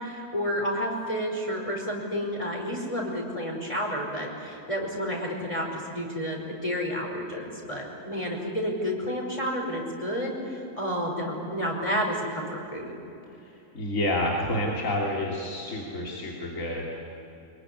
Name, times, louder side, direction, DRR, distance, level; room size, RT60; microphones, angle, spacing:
voice 1, 0.0-12.9, equal, 20° left, 0 dB, 5.4 m, -30 dB
voice 2, 13.4-17.0, left 1 dB, 55° left, -3 dB, 3.2 m, -29 dB
25.5 x 23.0 x 9.8 m, 2.9 s
omnidirectional pair, 1.6 m